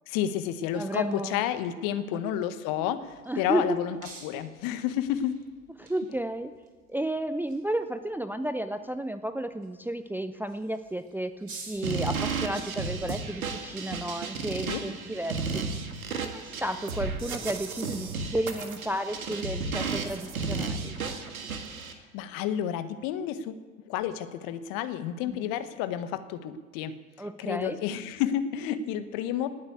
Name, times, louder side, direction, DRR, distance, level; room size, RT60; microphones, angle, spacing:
voice 1, 0.1-4.0 4.2-5.4 14.7-14.8 21.9-23.6 23.9-29.5, left 10 dB, 50° left, 11 dB, 1.3 m, -31 dB
voice 2, 0.7-1.5 2.1-2.2 3.3-3.8 5.8-6.5 6.9-15.7 16.1-20.9 25.2-25.4 27.2-27.8, right 1 dB, 5° right, 10 dB, 0.6 m, -32 dB
sound 1, 2.7-17.2, right 4 dB, 35° right, 6.1 m, -53 dB
sound 2, 11.8-21.9, right 4 dB, 80° right, 1.6 m, -33 dB
19.0 x 8.8 x 8.1 m, 1.4 s
figure-of-eight pair, 70°, 42 cm